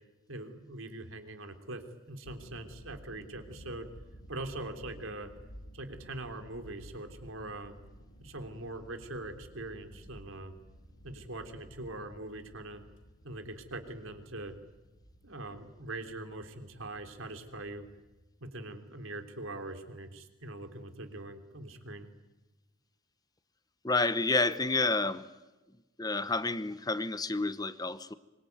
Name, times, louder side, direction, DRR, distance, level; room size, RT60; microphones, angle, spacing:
voice 1, 0.3-3.9 4.3-5.3 5.7-7.7 8.2-10.5 11.0-12.8 13.2-14.5 15.2-17.9 18.4-22.1, right 2 dB, 75° right, 6 dB, 3.3 m, -42 dB
sound 1, 2.2-18.4, equal, 70° left, 6.8 m, -54 dB
voice 2, 23.8-25.3 26.0-28.1, left 3 dB, 20° left, 13 dB, 0.8 m, -29 dB
25.5 x 23.0 x 9.5 m, 1.1 s
head